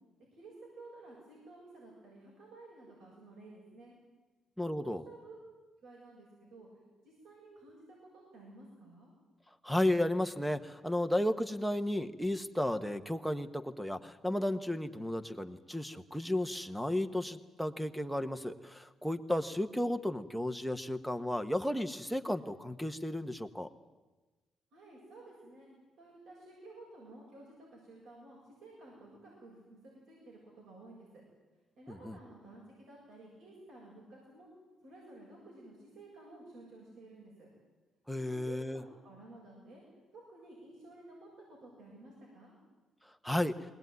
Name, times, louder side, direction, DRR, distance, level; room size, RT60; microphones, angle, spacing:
voice 1, 0.3-4.0 4.8-5.4 5.8-9.1 24.7-25.7 26.0-31.2 31.8-34.5 34.8-37.5 38.2-39.8 40.1-42.5, right 2 dB, 75° right, -4 dB, 7.6 m, -53 dB
voice 2, 4.6-5.0 9.6-23.7 31.9-32.2 38.1-38.8 43.2-43.5, left 1 dB, ahead, 11 dB, 1.3 m, -33 dB
21.0 x 18.5 x 9.6 m, 1.2 s
cardioid pair, 90°, 0 cm